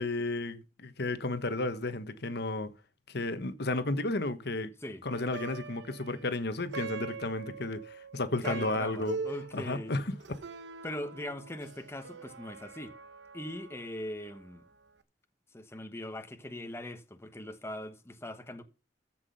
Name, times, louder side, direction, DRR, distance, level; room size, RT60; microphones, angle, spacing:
voice 1, 0.0-2.7 3.1-4.7 5.0-9.2 9.5-10.2, left 2 dB, 60° left, 1.3 m, -33 dB
Plucked string instrument, 5.1-14.5, right 4 dB, 70° right, 1.1 m, -43 dB
voice 2, 8.4-9.9 10.8-12.9 13.3-14.6 15.5-18.6, left 1 dB, 15° left, 1.1 m, -40 dB
14.0 x 6.1 x 5.7 m
head